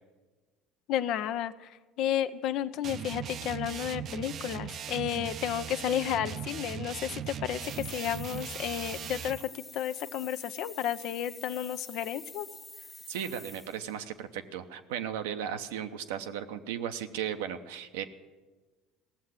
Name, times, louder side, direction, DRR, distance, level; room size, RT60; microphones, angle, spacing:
voice 1, 0.9-12.5, left 10 dB, 65° left, 12 dB, 0.6 m, -32 dB
sound 1, 2.8-9.4, right 8 dB, 50° right, 0.6 m, -39 dB
sound 2, 7.5-14.0, left 2 dB, 10° left, 0.6 m, -48 dB
voice 2, 13.1-18.0, right 9 dB, 85° right, 8 dB, 0.8 m, -36 dB
16.5 x 7.4 x 9.7 m, 1.3 s
supercardioid pair, 85°, 0 cm